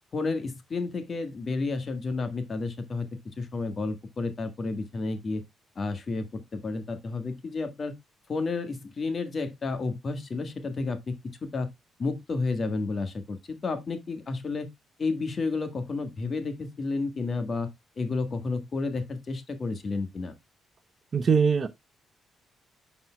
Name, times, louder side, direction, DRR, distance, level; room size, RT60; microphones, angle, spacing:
voice 1, 0.1-3.1 3.4-5.4 5.7-7.9 8.3-11.2 11.4-11.7 12.0-14.7 15.0-17.7 18.0-20.3, left 3 dB, 40° left, 1.5 m, -31 dB
voice 2, 21.1-21.7, right 6 dB, 45° right, 0.8 m, -21 dB
12.0 x 4.4 x 2.2 m
cardioid pair, 90°, 0 cm